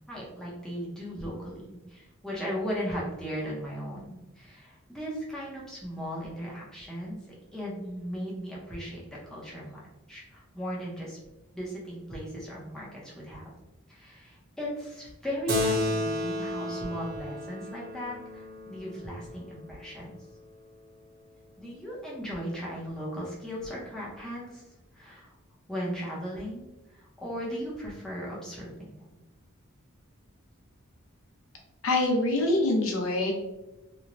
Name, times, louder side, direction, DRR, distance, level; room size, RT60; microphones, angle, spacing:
voice 1, 0.1-7.2 7.5-9.8 10.1-11.2 11.5-13.5 13.9-20.2 21.6-24.6 24.9-25.3 25.7-26.6 26.9-29.2, equal, 5° left, -6 dB, 0.6 m, -37 dB
Keyboard (musical), 15.5-20.4, left 1 dB, 45° right, 0.4 m, -33 dB
voice 2, 31.8-33.3, left 2 dB, 70° left, 1 dB, 0.6 m, -25 dB
3.0 x 2.1 x 2.5 m, 1.0 s
head